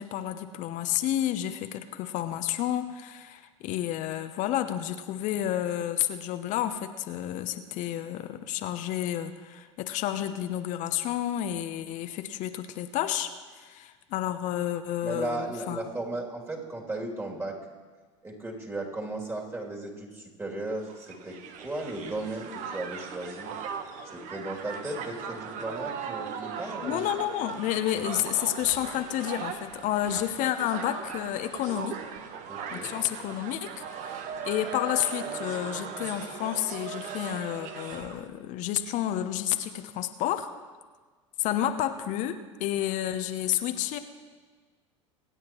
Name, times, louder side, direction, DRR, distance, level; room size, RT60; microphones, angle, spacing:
voice 1, 0.0-15.8 26.8-32.0 32.7-34.2 34.5-40.5 41.4-44.0, left 12 dB, 50° left, 9 dB, 0.8 m, -30 dB
voice 2, 15.0-17.6 18.2-23.5 24.1-27.1 32.5-32.9, right 2 dB, 15° right, -1 dB, 2.8 m, -36 dB
Crowd, 20.9-38.3, right 7 dB, 50° right, 1.1 m, -38 dB
25.0 x 9.3 x 3.0 m, 1.4 s
hypercardioid pair, 80°, 16 cm